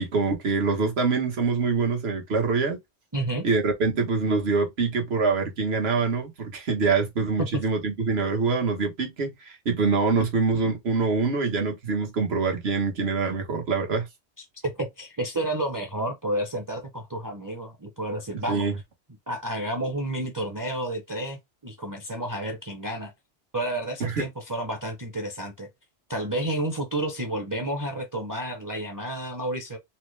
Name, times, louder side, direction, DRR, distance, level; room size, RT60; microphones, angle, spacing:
voice 1, 0.0-2.8 3.4-14.1 18.5-18.7 24.0-24.2, right 4 dB, 70° right, 1.3 m, -25 dB
voice 2, 3.1-3.4 7.4-7.6 14.6-18.7 19.3-23.1 23.5-25.7 26.1-29.8, right 1 dB, 25° right, 0.5 m, -30 dB
4.0 x 2.0 x 3.1 m
omnidirectional pair, 1.1 m